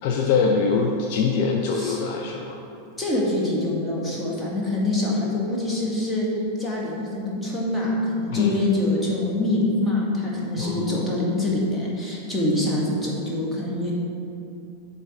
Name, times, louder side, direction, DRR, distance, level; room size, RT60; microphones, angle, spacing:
voice 1, 0.0-2.6 8.3-8.6 10.6-11.0, left 5 dB, 45° left, 1 dB, 0.6 m, -23 dB
voice 2, 1.7-2.0 3.0-6.3 6.6-13.9, left 1 dB, 10° left, -5 dB, 1.9 m, -25 dB
7.6 x 4.0 x 6.2 m, 2.7 s
figure-of-eight pair, 90°, 0 cm